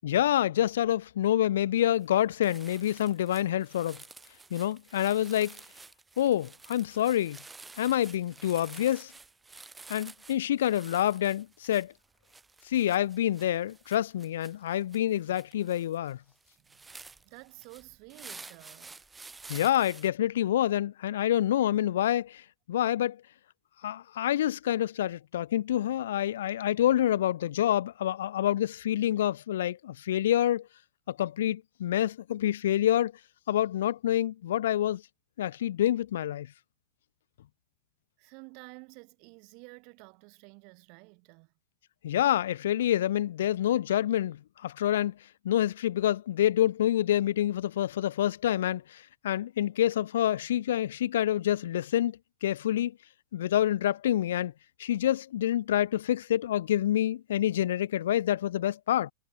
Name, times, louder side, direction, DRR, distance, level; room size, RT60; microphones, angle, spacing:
voice 1, 0.0-4.0 4.5-5.6 6.2-7.4 7.8-9.1 9.9-11.9 12.6-16.2 19.5-22.4 22.7-23.2 23.8-30.7 31.1-33.1 33.5-35.0 35.4-36.5 42.0-45.1 45.4-53.0 53.3-54.5 54.8-59.1, left 12 dB, 60° left, 1.0 m, -27 dB
sound 1, 2.0-2.2 2.4-20.1, right 3 dB, 10° right, 1.9 m, -50 dB
voice 2, 17.1-19.0 38.2-41.5, right 35 dB, 45° right, 4.3 m, -51 dB
figure-of-eight pair, 90°, 0 cm